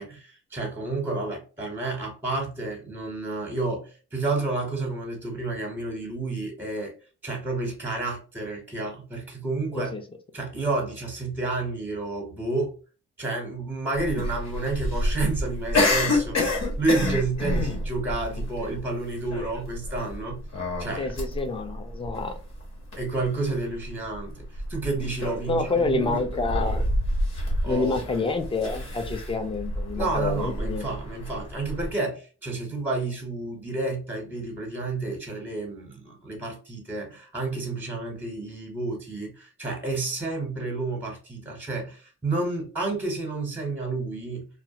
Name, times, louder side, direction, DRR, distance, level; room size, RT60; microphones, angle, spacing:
voice 1, 0.0-6.9 7.2-9.9 10.3-12.7 13.2-20.4 20.8-21.1 22.9-26.2 27.6-28.0 30.0-44.5, right 3 dB, 5° right, 1 dB, 0.9 m, -30 dB
sound 1, 14.0-31.9, left 1 dB, 60° left, 1.3 m, -29 dB
voice 2, 21.0-22.4 25.5-26.9 27.6-30.9, left 3 dB, 20° left, 7 dB, 0.5 m, -28 dB
2.3 x 2.1 x 2.7 m, 0.36 s
cardioid pair, 90°, 30 cm